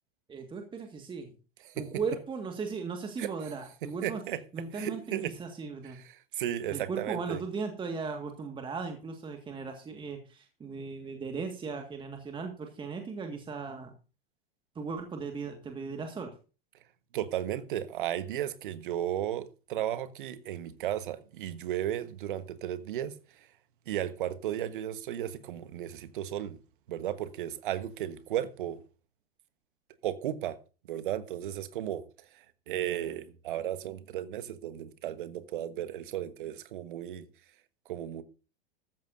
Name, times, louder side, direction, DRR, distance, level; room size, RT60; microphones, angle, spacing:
voice 1, 0.3-1.3 1.7-4.2 4.5-6.0 6.7-13.9 14.8-16.3, right 5 dB, 15° right, 1.8 m, -37 dB
voice 2, 4.0-4.4 4.7-5.3 6.3-7.4 17.1-23.1 23.9-26.6 26.9-28.8 30.0-30.6 30.9-32.1 32.7-37.3 37.9-38.2, right 11 dB, 60° right, 1.3 m, -34 dB
14.0 x 13.5 x 2.7 m
figure-of-eight pair, 100°, 29 cm